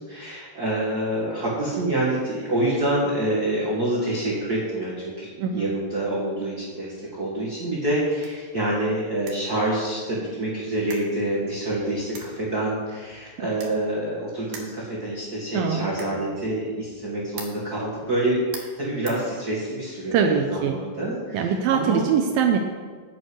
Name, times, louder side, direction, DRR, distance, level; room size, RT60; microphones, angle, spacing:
voice 1, 0.0-22.1, right 1 dB, 35° right, -6 dB, 1.5 m, -27 dB
sound 1, 7.7-19.9, right 5 dB, 65° right, 2.9 m, -47 dB
voice 2, 15.5-15.9 20.1-20.8 21.3-22.6, right 7 dB, 90° right, 4 dB, 2.0 m, -22 dB
8.9 x 7.8 x 8.0 m, 1.5 s
omnidirectional pair, 5.1 m